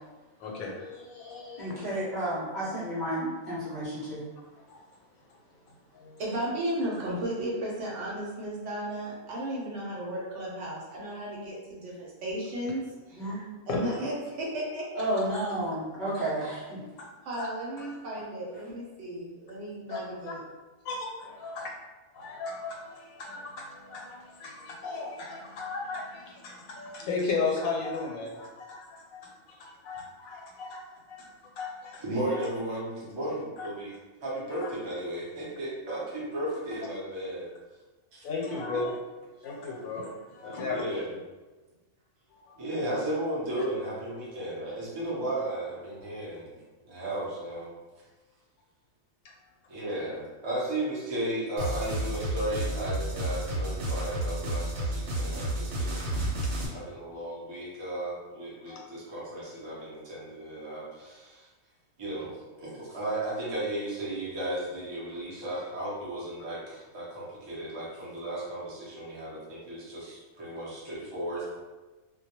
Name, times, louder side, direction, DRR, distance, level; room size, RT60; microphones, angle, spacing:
voice 1, 0.4-1.7 4.7-4.8 5.9-6.2 13.7-13.8 17.4-17.5 18.1-18.2 19.9-20.3 20.8-21.7 22.1-32.0 32.3-32.5 33.6-33.7 34.6-34.7 38.2-39.0 39.4-40.9 42.3-42.6 56.4-56.5 58.7-58.9, left 4 dB, 90° left, -1 dB, 1.0 m, -36 dB
voice 2, 1.6-4.3 13.2-13.4 15.0-16.8, right 1 dB, 50° left, -8 dB, 0.6 m, -31 dB
voice 3, 6.2-15.1 16.7-16.8 17.2-20.4, right 1 dB, 65° right, -4 dB, 0.9 m, -35 dB
voice 4, 32.0-33.9 34.2-37.5 38.1-38.2 38.7-38.8 40.4-41.1 42.6-46.5 46.9-47.7 49.7-56.0 56.7-61.5 62.0-71.6, right 1 dB, 35° right, -7 dB, 0.4 m, -35 dB
sound 1, 51.6-56.7, right 1 dB, 90° right, 1.1 m, -31 dB
2.2 x 2.2 x 2.8 m, 1.2 s
omnidirectional pair, 1.4 m